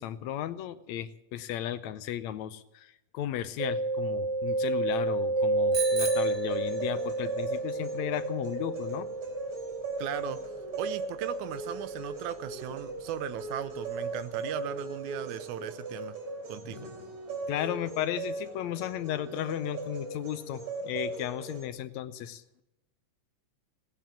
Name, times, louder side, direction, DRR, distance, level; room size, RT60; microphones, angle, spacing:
voice 1, 0.0-9.1 17.5-22.4, left 11 dB, 75° left, 12 dB, 1.9 m, -35 dB
Mallet percussion, 3.6-13.2, right 2 dB, 5° left, 4.5 m, -31 dB
Bicycle bell, 5.7-7.3, right 5 dB, 10° right, 1.6 m, -36 dB
sound 1, 5.7-21.7, right 3 dB, 65° right, 4.7 m, -38 dB
voice 2, 10.0-10.4 10.8-16.2 16.5-16.9, right 11 dB, 80° right, 14 dB, 2.2 m, -37 dB
18.5 x 9.2 x 8.5 m, 0.92 s
omnidirectional pair, 3.4 m